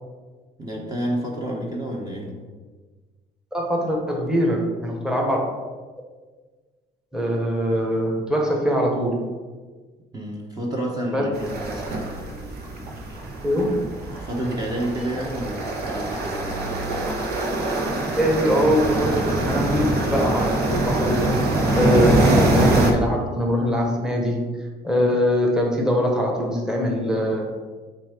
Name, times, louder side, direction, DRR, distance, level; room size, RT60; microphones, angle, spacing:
voice 1, 0.6-2.3 10.1-12.1 14.1-17.0, right 1 dB, 25° right, -1 dB, 1.0 m, -29 dB
voice 2, 3.5-5.4 7.1-9.3 11.1-11.2 13.4-13.8 18.2-21.2 21.7-24.6 24.8-27.4, equal, 5° right, -1 dB, 1.1 m, -22 dB
sound 1, 11.3-22.9, right 2 dB, 70° right, 1.1 m, -23 dB
7.2 x 2.7 x 5.0 m, 1.4 s
cardioid pair, 110°, 17 cm